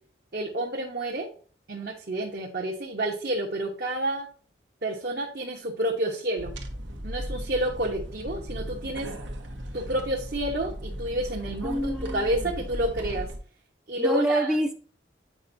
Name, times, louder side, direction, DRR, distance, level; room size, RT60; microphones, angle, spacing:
voice 1, 0.3-1.3 1.7-4.3 4.8-6.6 7.0-9.2 9.7-13.3 13.9-14.6, right 1 dB, 55° right, -1 dB, 1.1 m, -29 dB
sound 1, 6.4-13.4, equal, 85° right, 1.2 m, -37 dB
voice 2, 11.6-12.5 14.0-14.7, right 1 dB, 5° right, 6 dB, 0.5 m, -27 dB
8.4 x 5.3 x 2.7 m, 0.42 s
head